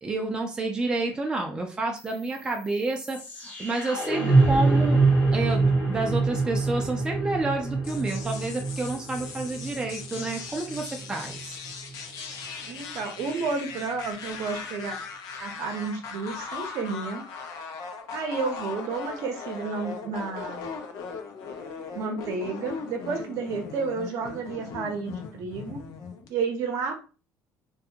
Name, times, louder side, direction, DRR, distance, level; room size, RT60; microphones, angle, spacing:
voice 1, 0.0-5.0 5.3-11.6, right 2 dB, 15° right, 1 dB, 0.4 m, -29 dB
sound 1, 2.0-12.0, right 3 dB, 30° left, 0.8 m, -25 dB
sound 2, 7.8-26.3, left 5 dB, 70° left, 0.6 m, -39 dB
voice 2, 12.7-15.0 15.4-17.2 18.1-20.7 21.9-25.9 26.3-27.0, right 4 dB, 60° right, 3 dB, 0.7 m, -31 dB
2.5 x 2.2 x 2.8 m, 0.34 s
cardioid pair, 155°, 6 cm